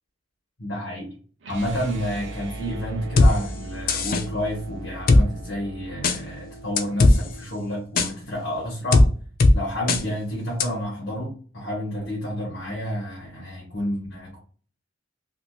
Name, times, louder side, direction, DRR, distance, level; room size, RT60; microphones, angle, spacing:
voice 1, 0.6-1.1 1.5-9.0 9.5-14.4, equal, 75° left, -5 dB, 1.2 m, -30 dB
sound 1, 1.4-7.5, right 1 dB, 65° right, 0.7 m, -38 dB
sound 2, 3.2-3.3 3.9-4.2 5.1-5.2 6.0-6.2 6.8-7.2 8.0-8.1 8.9-9.1 9.4-9.5 9.9-10.0 10.6-10.7, left 2 dB, 45° left, 0.4 m, -15 dB
3.5 x 2.7 x 2.4 m, 0.42 s
head